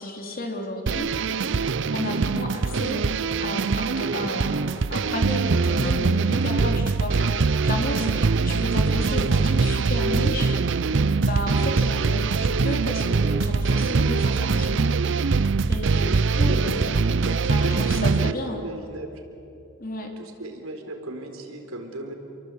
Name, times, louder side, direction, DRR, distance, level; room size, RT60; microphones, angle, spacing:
voice 1, 0.0-1.5 1.9-3.0 3.4-10.6 11.2-14.8 15.7-16.9 17.5-18.7 19.8-20.1, left 1 dB, 40° left, 2 dB, 3.8 m, -32 dB
sound 1, 0.9-18.3, right 4 dB, 60° right, 0.6 m, -23 dB
voice 2, 16.4-16.8 17.2-17.9 18.3-19.2 20.2-22.1, right 2 dB, 90° right, 4 dB, 4.4 m, -36 dB
29.0 x 23.5 x 8.6 m, 2.7 s
head